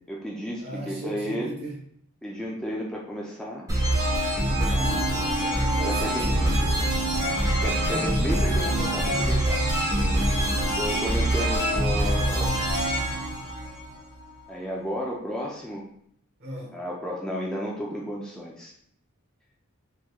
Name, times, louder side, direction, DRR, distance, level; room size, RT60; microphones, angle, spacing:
voice 1, 0.1-1.5 2.2-3.7 4.6-5.3 5.8-6.3 7.6-9.7 10.6-12.6 14.5-15.8 16.7-18.7, equal, 5° left, -4 dB, 0.4 m, -33 dB
voice 2, 0.6-1.8 4.7-6.9 16.4-16.8, right 1 dB, 50° right, -2 dB, 1.0 m, -38 dB
sound 1, 3.7-14.3, right 1 dB, 15° right, 1.0 m, -24 dB
3.5 x 3.0 x 2.3 m, 0.67 s
head